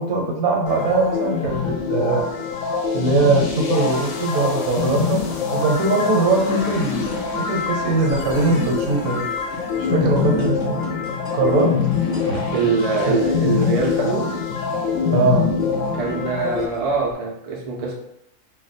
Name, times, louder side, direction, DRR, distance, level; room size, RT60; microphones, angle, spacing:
voice 1, 0.0-2.3 2.9-5.2 5.5-9.2 9.8-10.8 11.3-11.7 12.1-12.4 13.1-13.2 15.1-15.5, right 3 dB, 75° right, 0 dB, 1.1 m, -21 dB
sound 1, 0.7-16.7, left 6 dB, 70° left, 0.9 m, -24 dB
sound 2, 7.1-17.1, left 1 dB, 30° left, 0.8 m, -39 dB
voice 2, 12.5-14.3 15.9-17.9, right 4 dB, 55° right, -2 dB, 0.4 m, -23 dB
2.5 x 2.3 x 4.1 m, 0.78 s
omnidirectional pair, 1.5 m